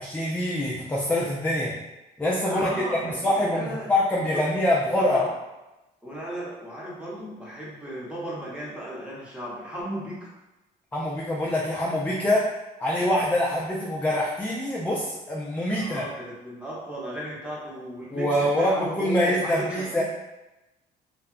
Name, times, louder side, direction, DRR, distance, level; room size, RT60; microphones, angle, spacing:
voice 1, 0.0-1.7 2.2-5.2 10.9-12.5 12.8-16.0 18.1-20.0, left 1 dB, 10° left, -5 dB, 0.4 m, -25 dB
voice 2, 2.5-3.9 4.2-4.4 5.0-5.3 6.0-10.3 15.7-20.0, equal, 5° right, -6 dB, 0.9 m, -35 dB
2.8 x 2.2 x 2.4 m, 1.0 s
cardioid pair, 110°, 17 cm